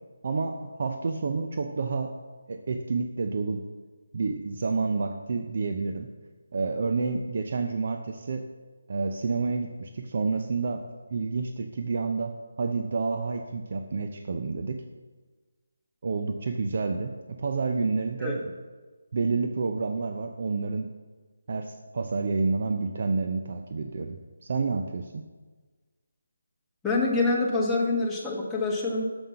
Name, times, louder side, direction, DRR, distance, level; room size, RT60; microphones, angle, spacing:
voice 1, 0.2-2.1 2.5-3.6 4.1-6.1 6.5-8.5 8.9-10.8 11.1-12.3 12.6-14.8 16.0-18.5 19.1-20.9 21.5-25.2, right 4 dB, 50° right, 5 dB, 0.6 m, -29 dB
voice 2, 26.8-29.0, left 3 dB, 5° left, -5 dB, 1.3 m, -26 dB
7.3 x 7.2 x 5.8 m, 1.3 s
figure-of-eight pair, 160°, 0 cm